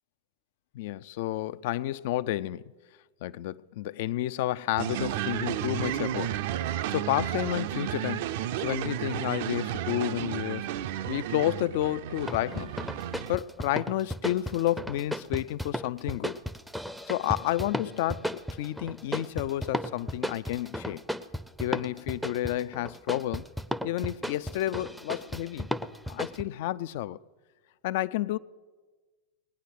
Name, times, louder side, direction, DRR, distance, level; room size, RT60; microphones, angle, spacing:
voice 1, 0.7-2.6 3.2-6.4 6.9-8.2 8.6-10.7 11.1-12.7 13.3-16.4 17.1-21.0 21.6-23.4 23.8-25.7 26.1-27.2 27.8-28.4, left 14 dB, 50° left, 0.4 m, -30 dB
sound 1, 4.8-13.3, right 11 dB, 50° right, 0.5 m, -32 dB
sound 2, 12.2-26.4, equal, ahead, 0.5 m, -35 dB
19.5 x 9.5 x 6.4 m
figure-of-eight pair, 90°, 0 cm